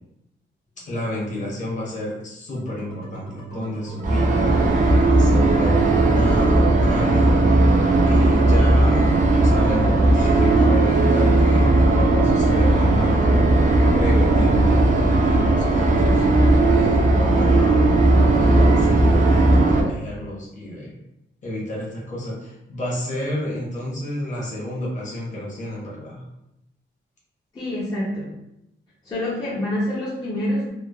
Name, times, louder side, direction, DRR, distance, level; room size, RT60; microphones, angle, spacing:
voice 1, 0.9-7.5 8.0-9.2 9.4-13.4 13.9-14.9 15.2-16.2 16.7-21.0 21.4-26.2, left 1 dB, 35° left, -4 dB, 0.8 m, -31 dB
sound 1, 2.5-17.9, right 2 dB, 90° left, 1.1 m, -36 dB
sound 2, 4.0-19.8, right 2 dB, 40° right, 0.4 m, -17 dB
voice 2, 27.5-28.3 29.0-30.7, left 1 dB, 20° left, -8 dB, 0.5 m, -26 dB
3.0 x 2.1 x 2.2 m, 0.86 s
wide cardioid pair, 165°, 20 cm